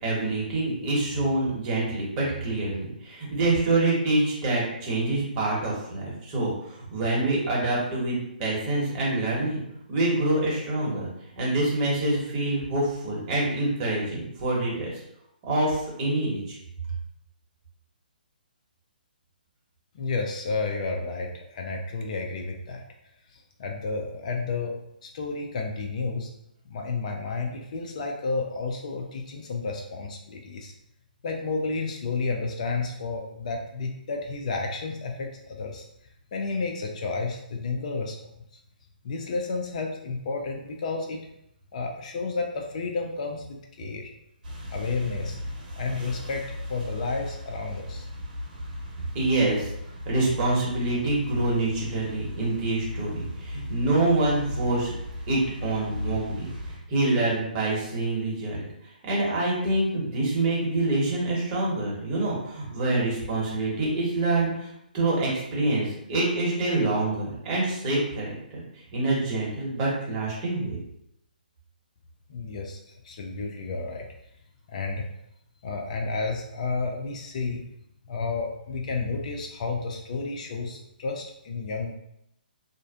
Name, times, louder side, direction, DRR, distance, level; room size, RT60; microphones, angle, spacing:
voice 1, 0.0-9.6 9.9-11.1 11.4-14.9 15.4-16.6 49.1-49.7 50.0-54.9 55.3-56.5 56.9-58.6 59.0-64.7 64.9-68.6 68.9-70.8, right 2 dB, 30° right, -5 dB, 1.0 m, -26 dB
voice 2, 19.9-22.8 23.3-24.7 25.0-26.3 26.7-30.7 31.2-35.8 36.3-38.2 39.0-41.2 41.7-44.1 44.7-45.4 45.8-46.4 46.7-48.1 72.3-72.8 73.0-74.1 74.7-75.0 75.6-77.6 78.1-81.9, left 3 dB, 45° left, 2 dB, 0.4 m, -31 dB
sound 1, 44.4-56.8, left 1 dB, 55° right, 0.9 m, -37 dB
2.5 x 2.1 x 2.4 m, 0.79 s
figure-of-eight pair, 135°, 5 cm